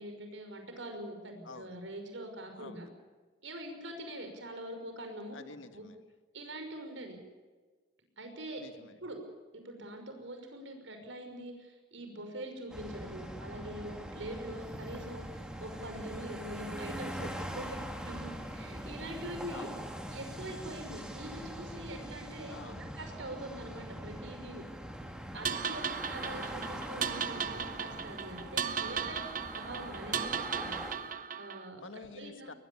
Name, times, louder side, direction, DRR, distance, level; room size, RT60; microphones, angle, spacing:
voice 1, 0.0-2.9 3.4-5.4 5.7-5.8 6.3-7.2 8.2-8.6 9.0-9.2 9.5-17.7 18.0-19.7 20.1-24.6 25.3-29.2 29.5-31.8 32.1-32.5, right 1 dB, 80° right, 5 dB, 5.8 m, -44 dB
voice 2, 1.4-1.8 2.6-2.9 5.3-6.0 8.5-9.0 17.2-17.6 19.5-19.9 22.5-22.9 25.6-25.9 29.2-29.4 31.8-32.5, left 3 dB, 90° left, 9 dB, 1.9 m, -49 dB
sound 1, 12.7-30.9, equal, 5° right, 2.7 m, -43 dB
sound 2, 25.4-31.7, right 7 dB, 45° right, 1.1 m, -36 dB
22.5 x 21.5 x 7.2 m, 1.4 s
head